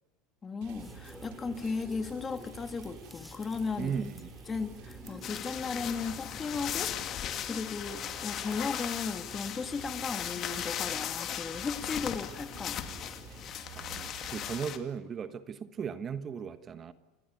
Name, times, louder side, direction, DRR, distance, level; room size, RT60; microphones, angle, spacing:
voice 1, 0.4-3.9 4.5-12.8, left 4 dB, 20° left, 9 dB, 2.1 m, -36 dB
sound 1, 0.6-14.5, right 12 dB, 65° right, 3.3 m, -52 dB
sound 2, 0.8-13.5, left 1 dB, ahead, 3.9 m, -50 dB
voice 2, 3.8-4.3 13.7-16.9, right 7 dB, 30° right, 11 dB, 1.3 m, -37 dB
sound 3, 5.2-14.8, left 10 dB, 40° left, 2.4 m, -37 dB
28.5 x 17.5 x 9.5 m, 1.1 s
supercardioid pair, 120°, 0 cm